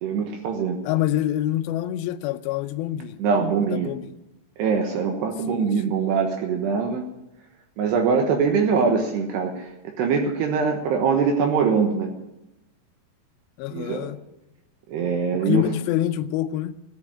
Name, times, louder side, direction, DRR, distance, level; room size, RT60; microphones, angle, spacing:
voice 1, 0.0-0.8 3.2-3.9 4.6-7.0 7.8-9.7 10.0-12.1 13.7-14.1 14.9-15.6, right 5 dB, 75° right, 3.3 m, -23 dB
voice 2, 0.8-3.2 3.7-4.1 5.5-5.7 13.6-14.2 15.5-16.8, left 13 dB, 80° left, 2.8 m, -26 dB
17.5 x 8.3 x 9.8 m
omnidirectional pair, 5.1 m